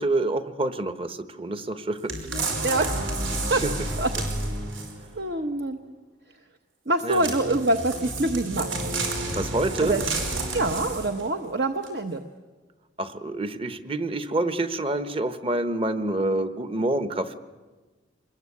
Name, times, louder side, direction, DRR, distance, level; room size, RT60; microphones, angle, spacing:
voice 1, 0.0-2.2 3.6-3.7 7.0-7.3 9.4-10.0 13.0-17.4, right 2 dB, 30° right, 11 dB, 1.1 m, -27 dB
sound 1, 2.1-5.1 7.1-11.3 11.8-11.9, right 2 dB, 90° right, 5.2 m, -30 dB
voice 2, 2.6-3.2 3.5-3.6 4.0-4.1 5.1-5.8 6.9-8.8 9.8-10.0 10.5-12.2, right 2 dB, 55° right, 6 dB, 1.1 m, -25 dB
25.5 x 21.0 x 8.4 m, 1.3 s
head